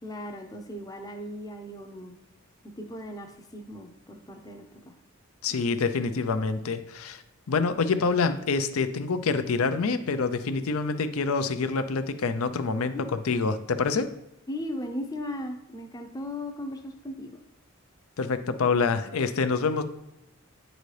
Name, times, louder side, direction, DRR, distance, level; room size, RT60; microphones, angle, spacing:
voice 1, 0.0-2.1 2.8-4.9 12.8-13.1 14.5-17.3, left 1 dB, 15° left, 4 dB, 0.6 m, -37 dB
voice 2, 5.4-7.2 7.5-13.0 13.3-14.1 18.2-19.8, left 4 dB, 85° left, 10 dB, 0.5 m, -26 dB
9.2 x 3.9 x 3.3 m, 0.88 s
head